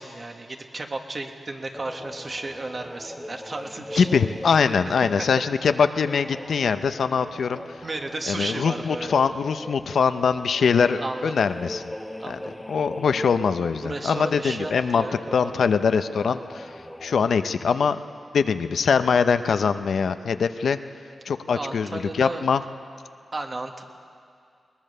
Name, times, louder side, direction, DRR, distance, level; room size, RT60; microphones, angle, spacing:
voice 1, 0.0-4.1 5.0-5.5 7.8-9.2 11.0-11.3 12.2-12.6 13.8-15.1 15.4-15.7 21.5-22.4 23.3-23.8, right 2 dB, 40° right, 4 dB, 1.6 m, -33 dB
sound 1, 1.7-17.4, left 1 dB, 10° left, 1.1 m, -40 dB
voice 2, 4.0-7.6 8.3-11.9 12.3-12.4 12.7-15.1 15.3-16.7 17.0-18.0 18.3-20.8 21.3-22.6, left 6 dB, 80° left, 10 dB, 0.7 m, -22 dB
21.5 x 19.5 x 6.7 m, 2.4 s
wide cardioid pair, 90°, 0 cm